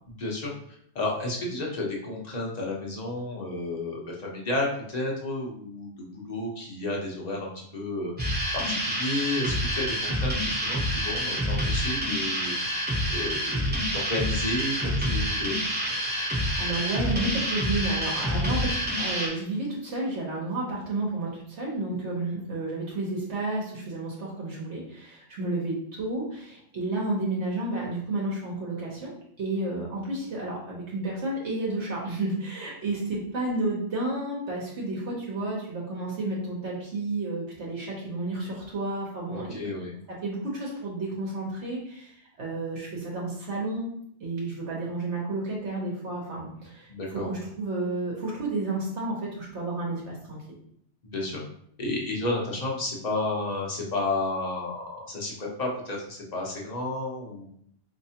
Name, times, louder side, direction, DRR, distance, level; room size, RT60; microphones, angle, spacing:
voice 1, 0.2-8.1 8.5-12.7 13.1-13.6 13.9-15.6 39.3-39.9 46.9-47.3 51.0-51.4 51.8-57.4, left 2 dB, 40° left, -2 dB, 0.9 m, -32 dB
sound 1, 8.2-19.3, equal, 10° right, 0.8 m, -27 dB
voice 2, 16.2-29.1 29.4-39.6 40.2-43.9 44.2-46.9 47.1-50.6, right 2 dB, 70° right, -4 dB, 1.2 m, -31 dB
4.5 x 2.8 x 2.8 m, 0.68 s
omnidirectional pair, 1.3 m